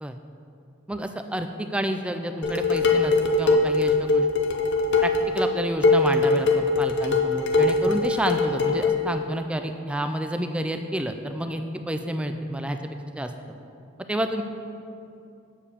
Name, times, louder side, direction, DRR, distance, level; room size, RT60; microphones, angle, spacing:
voice 1, 0.9-4.3 5.0-12.8 13.2-13.3 14.1-14.4, right 1 dB, 5° right, 7 dB, 0.3 m, -29 dB
Dishes pots and pans, 2.4-9.0, left 3 dB, 60° left, 0.7 m, -22 dB
7.3 x 4.5 x 6.9 m, 2.6 s
head